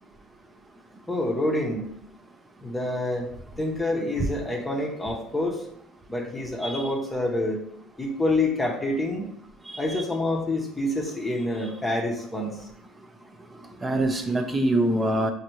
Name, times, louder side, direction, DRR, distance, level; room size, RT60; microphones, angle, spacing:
voice 1, 1.1-1.9 2.6-3.3 3.6-5.6 6.1-7.6 8.0-9.3 9.8-12.7, left 1 dB, 15° left, -1 dB, 0.8 m, -27 dB
voice 2, 9.7-10.0 13.8-15.3, right 1 dB, 20° right, 5 dB, 0.6 m, -25 dB
5.1 x 2.6 x 3.0 m, 0.72 s
supercardioid pair, 100°, 0 cm